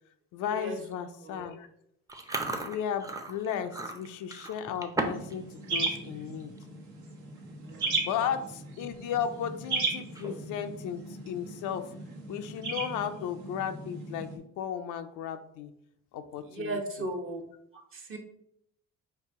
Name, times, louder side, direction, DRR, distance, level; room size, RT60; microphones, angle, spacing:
voice 1, 0.3-1.7 2.6-6.5 8.0-11.9 12.3-15.7 16.1-16.8, left 8 dB, 85° left, 9 dB, 0.5 m, -35 dB
Chewing mastication, 2.1-5.3 5.6-6.0 6.4-6.6 7.4-7.5 7.7-8.0 8.5-8.6 10.0-10.6, right 2 dB, 10° right, 0.5 m, -36 dB
sound 1, 5.1-14.4, right 3 dB, 75° right, 1.0 m, -36 dB
voice 2, 7.6-8.1 16.5-17.4 17.7-18.2, right 1 dB, 45° right, 3 dB, 1.0 m, -37 dB
4.7 x 2.6 x 3.6 m, 0.72 s
cardioid pair, 90°, 30 cm